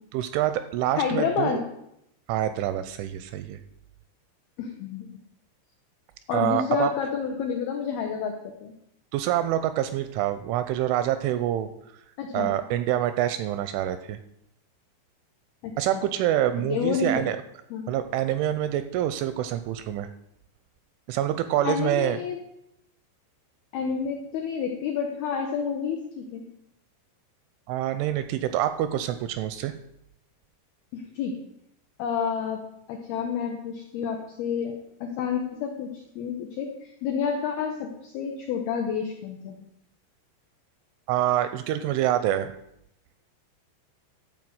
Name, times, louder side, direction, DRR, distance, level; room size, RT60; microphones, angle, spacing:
voice 1, 0.1-1.6 2.3-3.6 6.3-6.9 9.1-11.7 12.3-14.2 15.8-17.4 17.9-20.1 21.1-22.2 27.7-29.7 41.1-42.5, right 12 dB, 85° right, 10 dB, 2.8 m, -26 dB
voice 2, 1.0-1.6 4.6-5.1 6.3-8.7 12.2-12.5 15.6-16.0 16.6-17.3 17.7-17.9 21.6-22.4 23.7-26.4 30.9-31.4 32.0-32.6 32.9-39.7, left 6 dB, 85° left, 2 dB, 2.2 m, -29 dB
13.0 x 4.8 x 7.8 m, 0.78 s
omnidirectional pair, 5.9 m